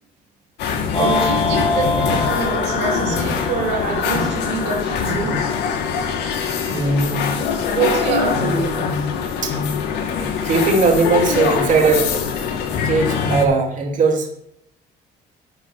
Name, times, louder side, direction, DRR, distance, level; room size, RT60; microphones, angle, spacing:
sound 1, 0.6-13.5, left 6 dB, 80° left, 2.5 m, -23 dB
voice 1, 0.7-5.4 7.7-9.0, right 6 dB, 80° right, 2.7 m, -25 dB
sound 2, 0.9-5.3, left 3 dB, 40° left, 2.9 m, -26 dB
voice 2, 6.7-7.4 9.4-9.6 10.2-12.2 12.8-14.3, right 3 dB, 50° right, 2.5 m, -19 dB
11.0 x 6.8 x 5.9 m
cardioid pair, 110°, 17 cm